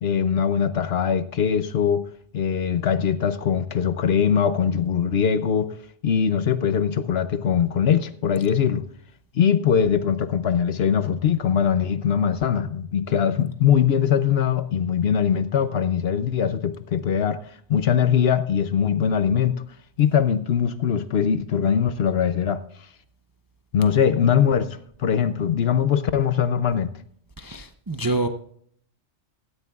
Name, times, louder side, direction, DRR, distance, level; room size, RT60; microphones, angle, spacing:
voice 1, 0.0-2.0 2.3-5.7 6.0-8.8 9.3-17.4 17.7-19.5 20.0-22.6 23.7-26.9, left 8 dB, 60° left, 0.8 m, -21 dB
voice 2, 27.4-28.3, right 2 dB, 25° right, 0.4 m, -26 dB
17.0 x 13.5 x 2.4 m
omnidirectional pair, 1.3 m